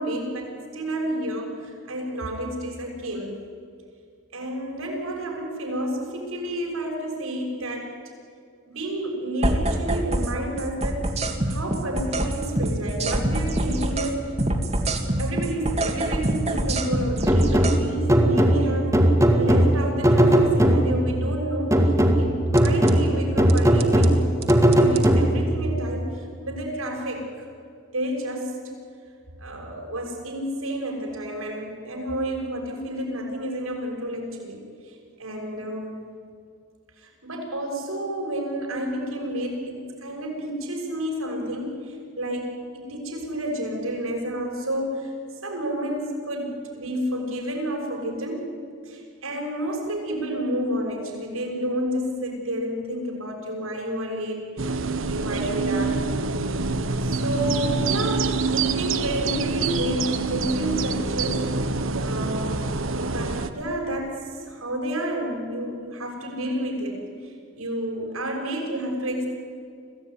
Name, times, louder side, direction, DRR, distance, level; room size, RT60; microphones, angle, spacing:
voice 1, 0.0-3.3 4.3-8.0 8.7-14.4 15.2-19.1 19.3-24.2 24.7-27.5 27.9-28.6 29.4-36.0 37.0-45.1 45.4-48.5 48.8-56.0 57.0-61.7 62.0-62.7 63.0-69.3, right 1 dB, 85° right, 1 dB, 6.3 m, -30 dB
sound 1, 9.4-10.3 10.6-14.1 14.4-17.8 22.6-22.9 23.5-24.1 24.4-25.1, right 1 dB, 30° right, 2.0 m, -25 dB
sound 2, 17.3-21.1 21.7-25.6, right 1 dB, 15° right, 2.1 m, -19 dB
sound 3, 54.6-63.5, right 3 dB, 65° right, 1.2 m, -26 dB
26.0 x 16.5 x 9.6 m, 2.3 s
head